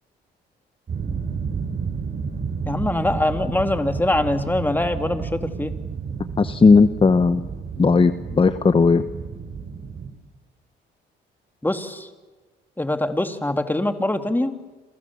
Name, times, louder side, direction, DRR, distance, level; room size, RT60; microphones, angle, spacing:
sound 1, 0.9-10.1, right 5 dB, 50° right, 4.9 m, -31 dB
voice 1, 2.7-5.7 11.6-12.1 12.8-14.5, left 1 dB, 10° left, 7 dB, 2.2 m, -23 dB
voice 2, 6.4-7.4 7.8-9.1, left 4 dB, 25° left, 11 dB, 1.0 m, -16 dB
29.0 x 27.0 x 7.1 m, 1.3 s
cardioid pair, 90°, 20 cm